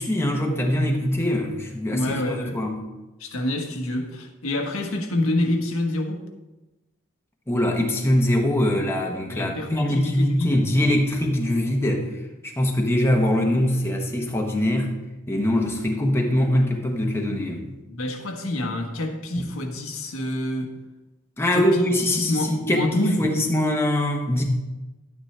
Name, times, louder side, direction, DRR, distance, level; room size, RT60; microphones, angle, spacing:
voice 1, 0.0-2.8 7.5-12.1 12.4-14.9 15.3-17.7 21.4-24.4, left 1 dB, 10° left, 1 dB, 1.0 m, -23 dB
voice 2, 1.9-2.6 3.2-6.2 9.3-10.6 17.9-20.8 21.5-21.8 22.1-23.3, left 1 dB, 90° left, 3 dB, 1.3 m, -27 dB
11.5 x 9.0 x 3.3 m, 1.1 s
head